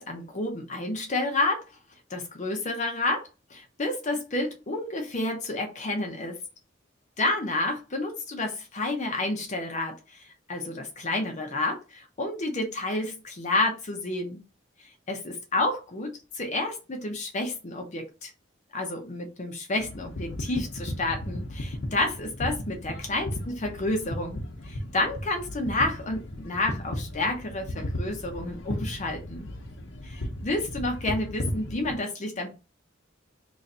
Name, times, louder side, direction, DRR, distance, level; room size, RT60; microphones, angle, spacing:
voice 1, 0.0-1.7 2.1-6.4 7.2-14.4 15.1-18.3 18.7-24.4 24.7-29.5 30.0-32.6, left 2 dB, 40° left, 0.7 m, -30 dB
sound 1, 19.8-32.0, left 1 dB, 75° left, 0.8 m, -35 dB
3.1 x 2.6 x 4.2 m
head